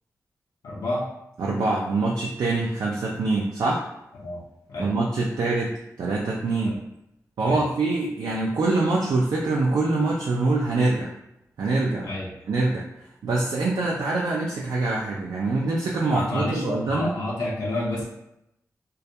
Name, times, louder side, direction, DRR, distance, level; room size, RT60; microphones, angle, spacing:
voice 1, 0.6-1.1 4.2-4.4 4.7-4.9 6.6-6.8 7.4-7.6 12.0-12.3 16.1-18.0, left 1 dB, 80° left, -5 dB, 0.5 m, -29 dB
voice 2, 1.4-3.8 4.8-6.8 7.4-11.1 11.6-12.1 12.5-12.8 13.2-17.1, right 3 dB, 75° right, -3 dB, 0.3 m, -24 dB
2.2 x 2.1 x 2.6 m, 0.83 s
cardioid pair, 60°, 6 cm